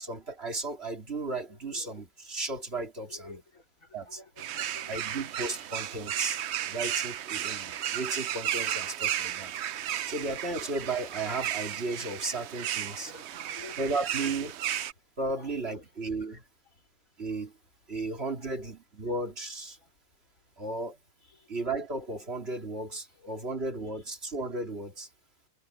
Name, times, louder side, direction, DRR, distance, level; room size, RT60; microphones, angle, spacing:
voice 1, 0.0-3.4 3.9-4.2 4.9-6.4 6.7-9.5 10.1-13.1 13.8-14.5 15.2-16.4 17.2-17.5 17.9-19.8 20.6-21.0 21.5-25.1, right 2 dB, 45° right, 3.1 m, -34 dB
voice 2, 1.5-2.0 3.1-5.7 6.4-6.5 9.6-10.3 12.8-13.9 15.3-15.5 16.2-16.3 16.7-16.9 17.3-17.4 18.4-18.7 19.8-19.9 21.3-21.5, left 3 dB, 70° left, 3.9 m, -53 dB
sound 1, 4.4-14.9, right 11 dB, 60° right, 0.8 m, -34 dB
omnidirectional pair, 1.5 m